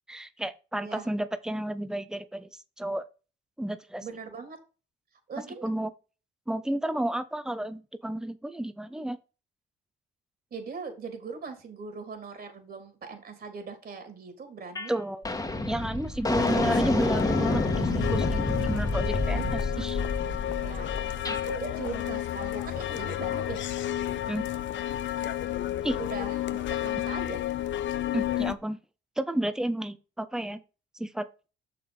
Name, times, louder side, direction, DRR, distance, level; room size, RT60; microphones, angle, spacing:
voice 1, 0.1-3.0 3.6-4.1 5.6-5.9 6.5-9.2 14.9-15.3 15.7-20.0 24.3-24.5 25.8-26.0 28.0-28.8 29.2-30.6 31.0-31.3, right 1 dB, 5° right, 0.9 m, -31 dB
voice 2, 4.0-4.6 5.3-5.7 10.5-14.9 20.6-23.6 26.0-27.4, right 5 dB, 50° right, 3.4 m, -40 dB
sound 1, 14.8-14.9 15.2-21.4, left 2 dB, 20° left, 1.6 m, -29 dB
sound 2, 16.4-28.5, left 12 dB, 70° left, 0.8 m, -31 dB
7.0 x 5.9 x 5.3 m
cardioid pair, 90°, 20 cm